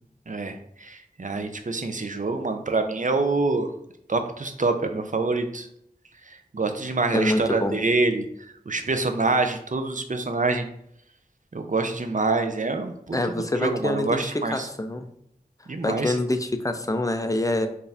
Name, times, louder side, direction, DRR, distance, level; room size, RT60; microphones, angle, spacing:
voice 1, 0.3-3.7 4.1-5.7 6.3-8.3 8.7-10.7 11.5-14.7 15.7-16.2, right 3 dB, 50° right, 6 dB, 0.5 m, -26 dB
voice 2, 7.1-7.8 13.1-15.1 15.8-17.7, left 1 dB, 20° left, 7 dB, 0.4 m, -26 dB
4.6 x 2.5 x 3.4 m, 0.71 s
wide cardioid pair, 40°, 17 cm